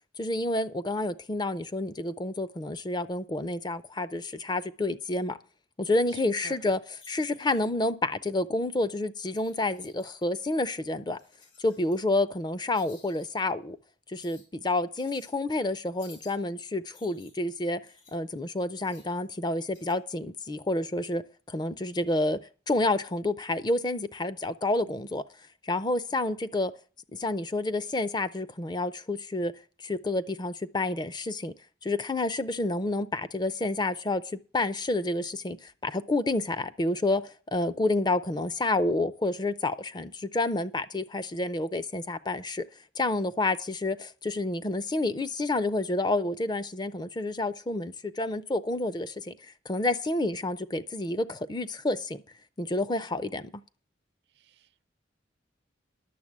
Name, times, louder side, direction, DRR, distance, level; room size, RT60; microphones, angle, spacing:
voice 1, 0.2-5.4 5.8-6.8 7.1-11.2 11.6-13.8 14.1-17.8 18.1-22.4 22.7-25.2 25.6-26.7 27.1-29.5 29.8-31.5 31.8-37.2 37.5-42.6 43.0-49.3 49.7-52.2 52.6-53.5, left 2 dB, 20° left, 0.5 m, -29 dB
voice 2, 6.1-6.6 54.4-54.9, right 5 dB, 60° right, 0.5 m, -49 dB
sound 1, 7.0-7.8 9.2-10.2 11.1-12.0 12.7-13.3 14.1-14.5 14.9-15.3 16.0-16.4 16.9-18.2 18.8-19.2 19.7-19.9, left 5 dB, 75° left, 3.9 m, -56 dB
11.0 x 7.1 x 7.3 m
head